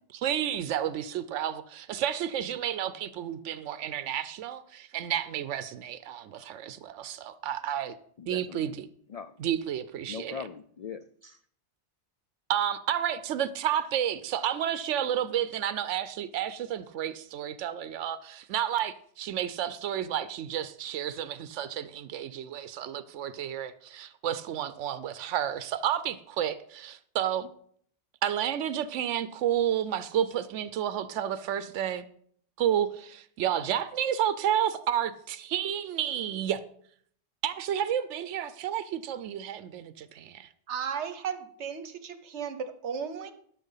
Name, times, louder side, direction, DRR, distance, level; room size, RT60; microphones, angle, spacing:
voice 1, 0.1-7.9 8.3-8.9 9.4-10.4 12.5-27.5 28.2-32.1 32.6-36.6 37.4-40.5, right 10 dB, 90° right, 0.9 m, -31 dB
voice 2, 8.2-8.7 9.1-9.4 10.1-11.4, left 6 dB, 85° left, 0.3 m, -41 dB
voice 3, 40.7-43.3, right 7 dB, 70° right, 1.2 m, -35 dB
12.0 x 6.0 x 5.6 m
omnidirectional pair, 1.2 m